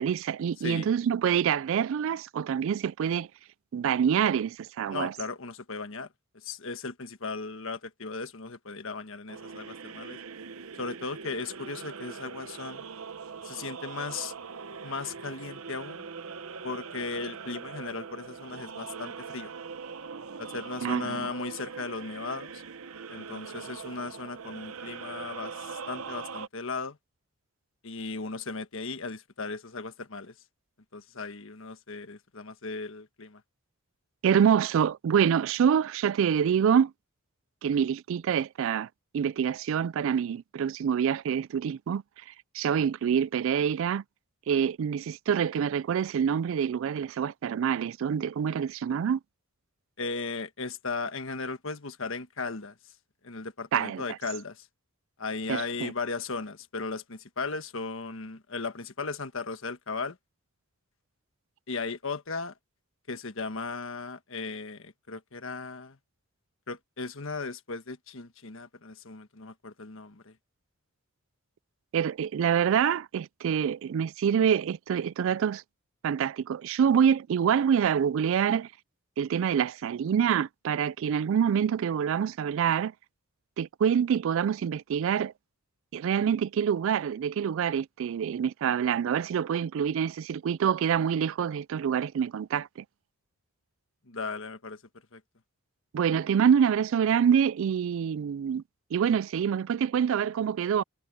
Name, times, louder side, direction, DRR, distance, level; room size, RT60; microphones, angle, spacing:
voice 1, 0.0-3.3 3.7-5.1 20.8-21.3 34.2-36.9 37.6-38.9 39.1-42.0 42.5-44.0 44.5-49.2 53.7-54.0 55.5-55.9 71.9-75.6 76.0-78.7 79.2-82.9 83.6-85.3 85.9-92.7 95.9-98.6 98.9-100.8, right 8 dB, 65° right, 0.3 m, -26 dB
voice 2, 0.6-0.9 4.9-6.1 6.4-10.2 10.8-12.8 13.4-14.3 14.8-16.1 16.6-19.5 20.4-22.6 23.1-27.0 27.8-30.3 30.9-33.4 50.0-52.7 53.2-54.7 55.2-60.2 61.7-62.5 63.1-66.0 66.7-70.3 94.1-94.8 95.1-95.2, left 4 dB, 65° left, 1.5 m, -36 dB
sound 1, 9.3-26.5, right 5 dB, 80° right, 0.9 m, -41 dB
head